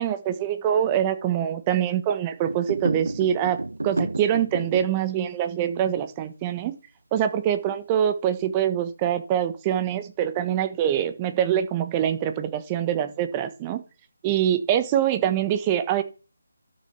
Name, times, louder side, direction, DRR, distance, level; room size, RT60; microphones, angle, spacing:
voice 1, 0.0-3.6 3.8-6.7 7.1-13.8 14.2-16.0, right 10 dB, 20° right, 10 dB, 1.2 m, -24 dB
sound 1, 2.4-5.0, right 2 dB, 75° right, 0.5 m, -30 dB
12.0 x 6.2 x 6.0 m, 0.34 s
figure-of-eight pair, 155°, 0 cm